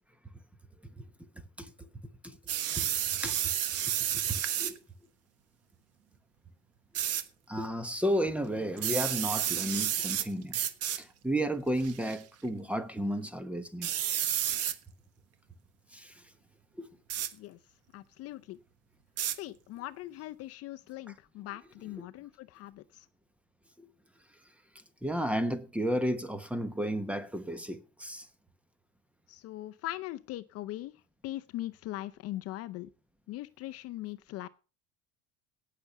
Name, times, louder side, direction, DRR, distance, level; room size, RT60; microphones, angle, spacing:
voice 1, 1.3-1.9 2.2-2.4 2.7-2.9 3.2-3.4 4.1-4.8 7.5-10.6 10.9-14.0 15.9-16.2 16.8-16.9 23.8-23.9 25.0-28.3, equal, 5° right, 1.0 m, -33 dB
sound 1, 2.5-4.8 6.9-7.2 8.8-10.3 10.5-11.0 11.8-12.2 13.8-14.7 17.1-17.3 19.2-19.4, right 11 dB, 45° right, 1.3 m, -31 dB
voice 2, 17.9-18.6 19.4-23.1 29.3-30.9 31.2-32.9 33.3-34.5, left 15 dB, 45° left, 0.6 m, -40 dB
17.5 x 6.8 x 5.8 m
cardioid pair, 155°, 34 cm